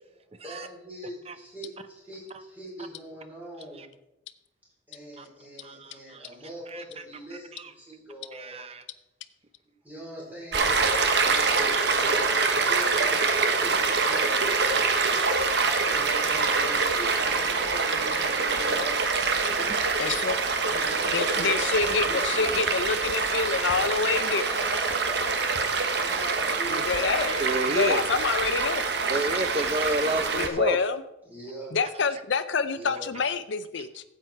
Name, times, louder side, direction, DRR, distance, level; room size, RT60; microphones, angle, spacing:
voice 1, 0.1-3.9 4.9-8.7 9.8-10.9 11.1-15.0 15.8-19.7 20.6-22.8 24.2-25.3 25.9-27.3 31.2-31.8 32.7-33.1, right 1 dB, 10° right, -6 dB, 4.8 m, -42 dB
voice 2, 5.6-6.2 6.7-6.8 7.5-7.7 8.3-8.8 27.2-28.0 29.1-30.8, right 2 dB, 30° right, 11 dB, 0.7 m, -30 dB
Stream, 10.5-30.5, right 4 dB, 60° right, 1.1 m, -25 dB
voice 3, 20.0-20.4 21.1-24.4 26.7-27.4 27.7-28.9 30.3-31.0 31.7-34.0, left 5 dB, 70° left, 11 dB, 0.5 m, -27 dB
12.5 x 8.0 x 4.5 m, 0.89 s
head